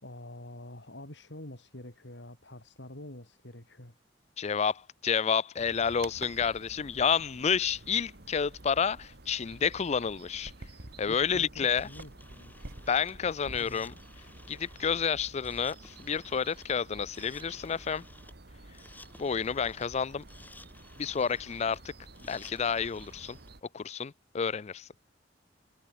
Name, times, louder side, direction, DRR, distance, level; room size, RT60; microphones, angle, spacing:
voice 1, 0.0-3.9 11.1-12.7 13.5-13.9, left 1 dB, 70° left, 4.5 m, -47 dB
voice 2, 4.4-10.5 11.0-11.9 12.9-13.9 14.5-18.0 19.2-20.2 21.0-21.8 22.2-23.4 23.7-24.9, left 6 dB, 35° left, 0.4 m, -30 dB
sound 1, 5.6-23.6, right 2 dB, 60° right, 2.4 m, -50 dB
sound 2, 11.6-23.5, left 2 dB, 10° left, 4.8 m, -55 dB
head